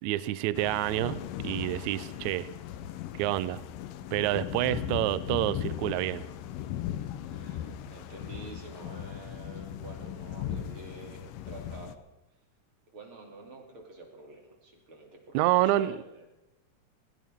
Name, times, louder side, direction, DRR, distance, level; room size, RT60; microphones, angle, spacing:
voice 1, 0.0-2.5 3.2-3.6 4.1-6.2 15.3-16.0, right 15 dB, 75° right, 16 dB, 1.8 m, -28 dB
sound 1, 0.6-11.9, left 11 dB, 80° left, 2.4 m, -38 dB
voice 2, 2.0-2.4 4.7-4.8 7.3-12.0 12.9-16.3, right 2 dB, 40° right, 1 dB, 3.4 m, -48 dB
20.5 x 18.0 x 3.6 m, 0.94 s
omnidirectional pair, 4.0 m